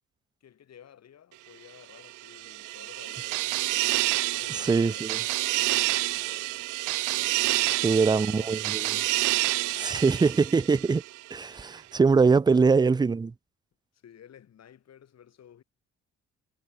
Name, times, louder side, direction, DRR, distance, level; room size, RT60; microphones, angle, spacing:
voice 1, 0.4-3.9 4.3-6.7 7.1-10.0 12.3-12.9 13.9-15.6, left 9 dB, 60° left, 3.5 m, -52 dB
sound 1, 2.1-11.2, right 20 dB, 85° right, 0.5 m, -28 dB
voice 2, 4.6-5.2 7.8-8.8 9.8-11.0 11.3-13.3, right 4 dB, 15° right, 0.4 m, -22 dB
cardioid pair, 90°, 30 cm